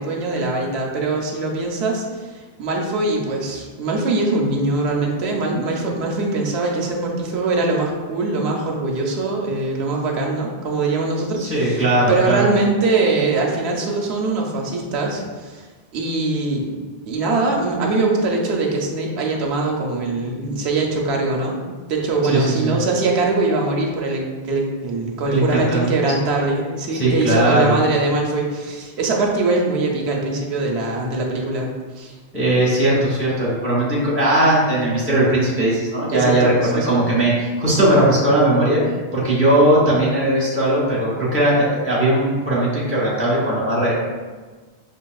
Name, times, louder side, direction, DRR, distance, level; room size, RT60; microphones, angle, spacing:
voice 1, 0.0-15.7 15.9-16.7 17.1-31.7 32.0-32.2 36.1-37.0, right 3 dB, 85° right, -1 dB, 0.9 m, -22 dB
voice 2, 11.4-12.4 22.3-22.7 25.2-25.9 26.9-27.7 32.3-43.9, right 1 dB, 10° right, -8 dB, 1.2 m, -18 dB
5.1 x 2.7 x 2.3 m, 1.4 s
omnidirectional pair, 1.1 m